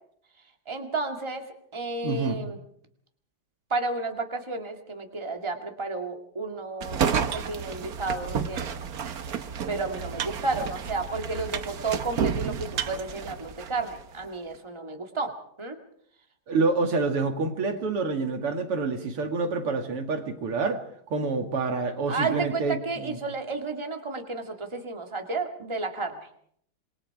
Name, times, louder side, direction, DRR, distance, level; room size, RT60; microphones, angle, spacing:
voice 1, 0.7-2.6 3.7-7.0 7.3-8.8 9.7-15.3 15.6-15.8 22.1-26.2, right 3 dB, 15° right, 4 dB, 2.2 m, -32 dB
voice 2, 2.0-2.4 16.5-20.8 21.1-23.2, right 4 dB, 90° right, 5 dB, 3.1 m, -27 dB
sound 1, 6.8-14.0, right 7 dB, 50° right, 1.3 m, -31 dB
27.0 x 22.0 x 4.9 m, 0.65 s
omnidirectional pair, 2.4 m